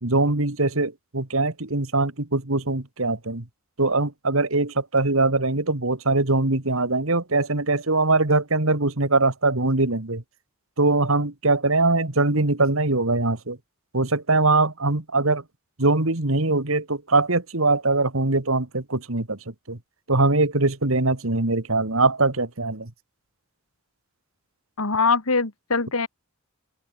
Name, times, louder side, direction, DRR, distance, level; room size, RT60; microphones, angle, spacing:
voice 1, 0.0-3.4 3.8-10.2 10.8-13.6 13.9-15.4 15.8-19.4 19.7-19.8 20.1-22.9, right 2 dB, 65° right, 2.2 m, -22 dB
voice 2, 24.8-26.1, left 4 dB, 70° left, 1.9 m, -22 dB
open air
head